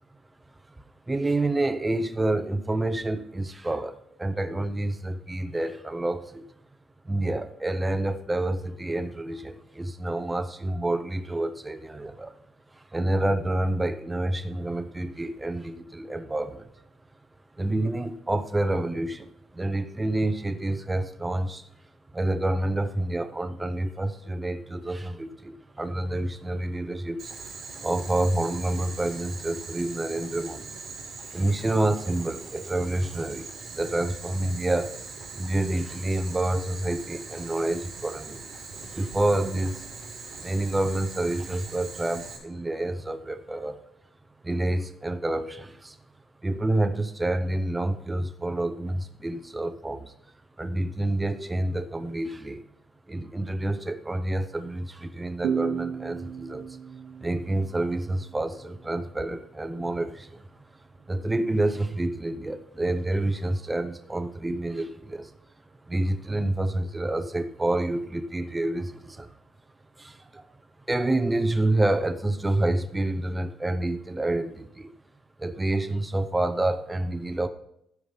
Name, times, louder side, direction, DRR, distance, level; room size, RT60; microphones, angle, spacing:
voice 1, 1.1-6.4 7.0-12.3 12.7-16.7 17.6-21.7 22.1-30.8 31.3-34.9 35.3-38.4 38.9-39.9 40.4-43.8 44.4-46.0 46.4-50.1 50.6-52.6 53.1-56.8 57.2-60.6 61.1-65.3 65.9-69.4 70.0-70.4 70.9-74.9 75.4-77.5, right 1 dB, 15° right, 9 dB, 0.7 m, -28 dB
Boiling, 27.2-42.4, right 4 dB, 55° right, 4.8 m, -41 dB
sound 1, 55.4-58.9, right 7 dB, 80° right, 0.8 m, -34 dB
13.0 x 5.1 x 5.6 m, 0.74 s
cardioid pair, 110°, 0 cm